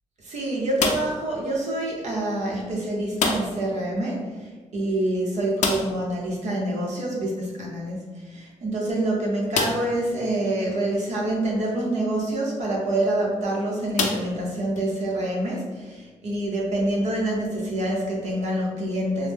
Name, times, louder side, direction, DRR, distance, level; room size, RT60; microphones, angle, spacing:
voice 1, 0.2-19.3, right 1 dB, 70° right, -3 dB, 0.9 m, -26 dB
sound 1, 0.8-1.3 3.2-3.7 4.0-4.1 4.4-4.5 5.6-6.1 7.9-8.0 8.6-8.7 9.5-10.0 10.7-10.8 12.8-13.1 13.9-14.8, left 4 dB, 85° left, 0.4 m, -27 dB
3.1 x 2.1 x 3.5 m, 1.3 s
cardioid pair, 105°, 12 cm